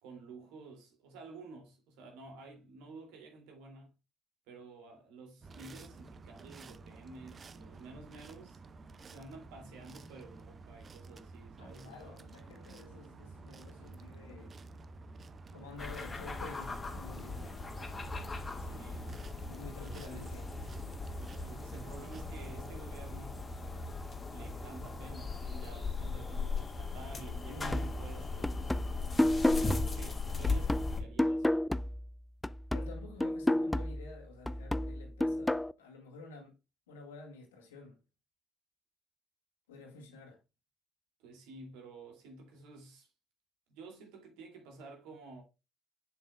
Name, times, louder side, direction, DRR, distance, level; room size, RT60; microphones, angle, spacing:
voice 1, 0.0-3.9 4.5-8.6 9.0-12.2 18.4-19.2 19.7-20.3 21.4-23.4 24.3-28.8 29.5-31.7 41.2-43.1 43.7-45.4, right 3 dB, 70° right, 2.4 m, -51 dB
sound 1, 5.4-22.7, right 3 dB, 35° right, 0.7 m, -51 dB
voice 2, 11.6-14.6 15.5-17.6 19.5-20.4 27.5-28.0 29.5-29.9 32.7-36.5 36.9-38.0 39.7-40.4, left 3 dB, 80° left, 1.7 m, -50 dB
sound 2, 15.8-31.0, left 4 dB, 25° left, 1.7 m, -38 dB
sound 3, 27.7-32.2 32.4-35.7, left 1 dB, 10° left, 0.4 m, -31 dB
7.3 x 7.1 x 2.2 m
figure-of-eight pair, 50°, 0 cm